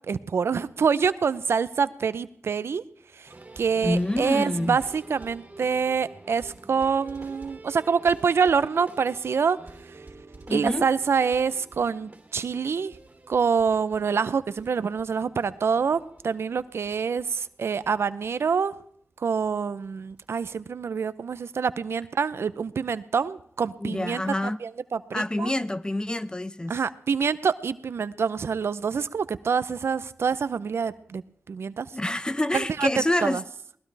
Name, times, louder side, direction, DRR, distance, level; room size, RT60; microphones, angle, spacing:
voice 1, 0.1-2.8 3.1-10.1 10.5-13.0 13.3-18.8 19.2-25.5 26.7-31.2 31.5-32.0 32.5-32.9 33.2-33.4, right 6 dB, 70° right, 0.6 m, -26 dB
sound 1, 3.2-17.9 18.2-18.3 18.6-18.7 19.4-19.5 19.8-20.5 21.1-21.2, right 2 dB, 35° right, 3.1 m, -48 dB
voice 2, 3.8-4.8 10.5-10.9 23.8-24.6 25.1-26.8 31.9-33.4, left 1 dB, 20° left, 0.7 m, -27 dB
21.5 x 19.5 x 3.4 m
cardioid pair, 50°, 4 cm